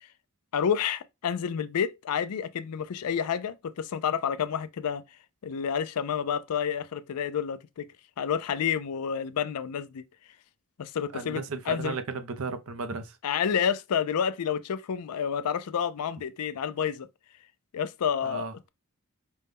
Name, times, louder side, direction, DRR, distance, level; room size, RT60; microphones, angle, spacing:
voice 1, 0.5-5.0 5.4-7.9 8.2-10.0 10.8-12.0 13.2-17.1 17.7-18.7, left 7 dB, 90° left, 0.4 m, -29 dB
voice 2, 11.1-13.2 18.2-18.5, right 4 dB, 65° right, 0.6 m, -34 dB
5.2 x 2.2 x 3.4 m
head